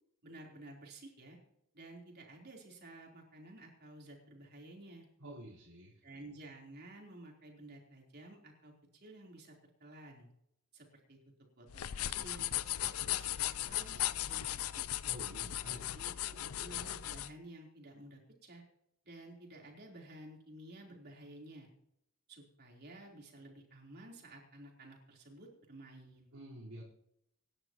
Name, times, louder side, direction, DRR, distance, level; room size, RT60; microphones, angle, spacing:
voice 1, 0.2-1.4 1.7-5.1 6.0-9.6 9.8-10.3 10.7-11.2 11.6-14.8 15.7-18.6 19.0-21.7 22.3-26.3, right 1 dB, 50° right, 0 dB, 3.8 m, -53 dB
voice 2, 5.2-6.0 15.0-16.0 26.3-26.8, right 1 dB, 85° right, -7 dB, 4.5 m, -49 dB
sound 1, 11.7-17.3, left 13 dB, 75° left, 0.5 m, -37 dB
26.0 x 11.0 x 3.1 m, 0.78 s
head